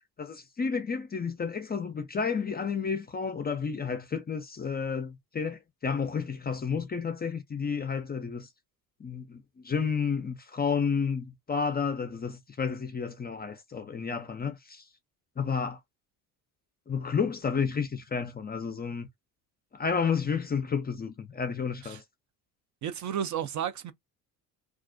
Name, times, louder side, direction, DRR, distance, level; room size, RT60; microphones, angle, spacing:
voice 1, 0.2-8.5 9.0-14.8 15.4-15.8 16.9-19.1 19.7-22.0, left 6 dB, 20° left, 0.4 m, -31 dB
voice 2, 22.8-23.9, right 9 dB, 40° right, 0.5 m, -32 dB
2.4 x 2.0 x 2.5 m
hypercardioid pair, 60°, 46 cm